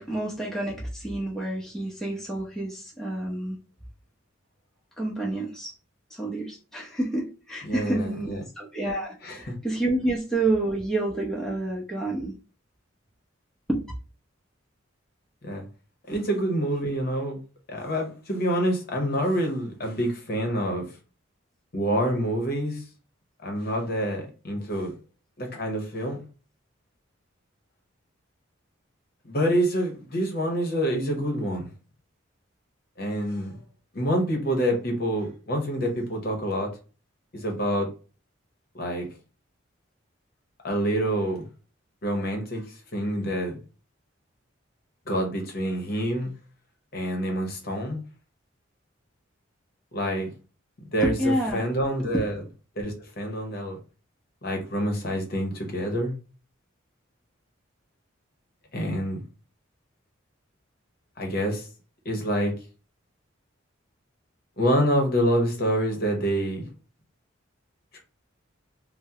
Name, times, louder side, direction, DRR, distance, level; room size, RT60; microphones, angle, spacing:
voice 1, 0.0-3.6 5.0-5.7 6.1-8.3 8.6-12.4 13.7-13.8 16.1-16.2 51.0-51.6 52.0-52.2, right 2 dB, 5° left, 0.7 m, -28 dB
voice 2, 7.6-8.4 9.2-9.6 15.4-15.7 16.1-17.4 17.7-20.8 21.7-22.8 23.4-24.9 25.4-26.2 29.2-31.7 33.0-33.6 33.9-36.7 37.3-37.9 38.7-39.1 40.6-41.4 42.0-42.6 42.9-43.6 45.1-46.3 46.9-48.0 49.9-50.3 50.8-52.4 52.8-53.8 54.4-56.1 58.7-59.2 61.2-61.7 62.0-62.5 64.6-66.7 67.9-68.0, equal, 50° left, 0.8 m, -27 dB
3.5 x 2.1 x 2.7 m
head